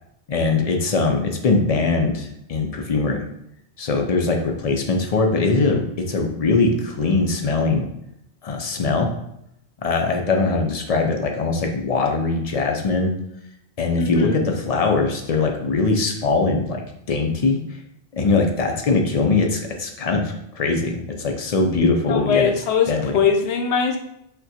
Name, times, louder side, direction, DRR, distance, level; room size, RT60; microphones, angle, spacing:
voice 1, 0.3-3.2 3.8-7.9 8.4-9.1 9.8-13.1 13.8-17.6 18.1-22.5 22.9-23.2, left 3 dB, 55° left, 3 dB, 0.4 m, -21 dB
voice 2, 14.0-14.4 22.1-24.0, left 6 dB, 80° left, 4 dB, 0.9 m, -21 dB
6.0 x 2.2 x 2.7 m, 0.78 s
omnidirectional pair, 1.1 m